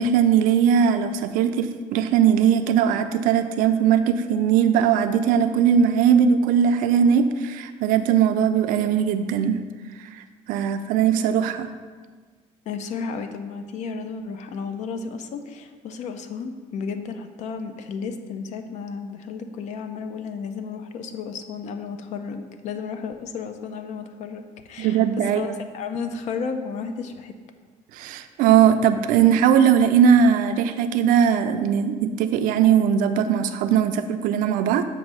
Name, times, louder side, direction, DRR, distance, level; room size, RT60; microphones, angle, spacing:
voice 1, 0.0-9.6 10.5-11.7 24.8-25.6 27.9-34.9, right 8 dB, 75° right, 9 dB, 0.4 m, -19 dB
voice 2, 12.7-27.3, left 5 dB, 55° left, 7 dB, 0.5 m, -33 dB
7.4 x 2.6 x 5.4 m, 1.5 s
cardioid pair, 145°, 14 cm